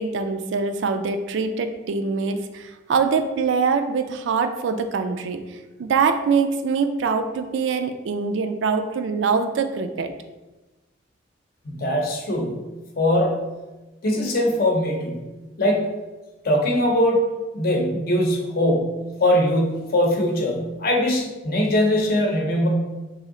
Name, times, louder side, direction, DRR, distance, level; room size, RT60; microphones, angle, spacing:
voice 1, 0.0-5.4 5.8-10.1, right 5 dB, 70° right, 8 dB, 0.3 m, -23 dB
voice 2, 11.6-13.4 14.0-15.3 15.6-15.9 16.4-17.2 17.5-22.7, left 1 dB, 50° left, 0 dB, 0.7 m, -21 dB
3.1 x 2.7 x 3.8 m, 1.1 s
head